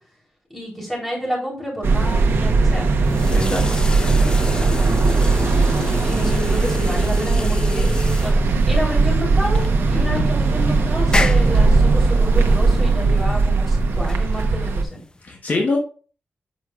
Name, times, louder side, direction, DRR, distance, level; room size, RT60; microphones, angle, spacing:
voice 1, 0.5-2.9 3.2-3.6 6.0-15.0, equal, 5° left, -4 dB, 3.5 m, -29 dB
sound 1, 1.8-14.8, right 3 dB, 75° right, 0.9 m, -18 dB
sound 2, 2.8-15.2, left 2 dB, 20° left, 0.6 m, -30 dB
voice 2, 3.3-3.6 4.2-4.5 9.9-10.2 15.2-15.8, left 3 dB, 45° left, 0 dB, 1.1 m, -25 dB
7.7 x 6.0 x 2.4 m, 0.38 s
wide cardioid pair, 160°, 4 cm